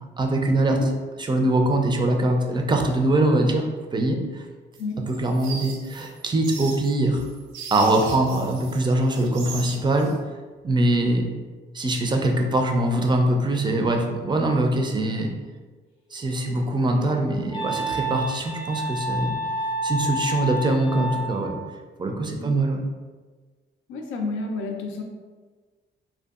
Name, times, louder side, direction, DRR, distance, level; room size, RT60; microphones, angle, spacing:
voice 1, 0.2-0.9 1.2-4.5 5.0-7.3 7.7-10.1 10.6-11.3 11.7-15.3 16.1-19.4 19.8-21.6 22.0-22.8, right 1 dB, 25° right, 2 dB, 0.4 m, -23 dB
sound 1, 4.7-8.8 9.1-10.1, right 5 dB, 85° right, 0.5 m, -38 dB
Wind instrument woodwind instrument, 16.1-21.6, right 1 dB, 30° left, 0.6 m, -30 dB
voice 2, 23.9-25.0, left 3 dB, 90° left, 2 dB, 0.4 m, -30 dB
2.6 x 2.2 x 2.3 m, 1.4 s
cardioid pair, 90°, 20 cm